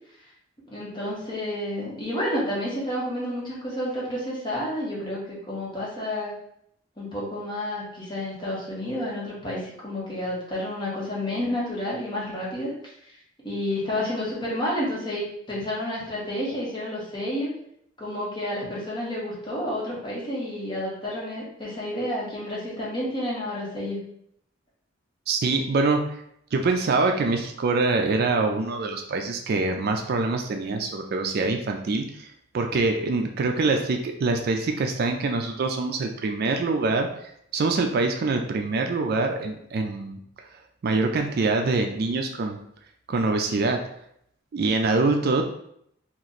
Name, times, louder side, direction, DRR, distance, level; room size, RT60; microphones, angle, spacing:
voice 1, 0.7-6.3 7.0-12.7 13.4-17.5 18.0-24.0, left 1 dB, 25° left, -6 dB, 1.2 m, -30 dB
voice 2, 25.3-26.2 26.5-32.3 32.5-40.2 40.8-42.6 43.1-43.8 44.5-45.4, right 3 dB, 50° right, 4 dB, 0.4 m, -24 dB
3.0 x 2.5 x 3.9 m, 0.72 s
head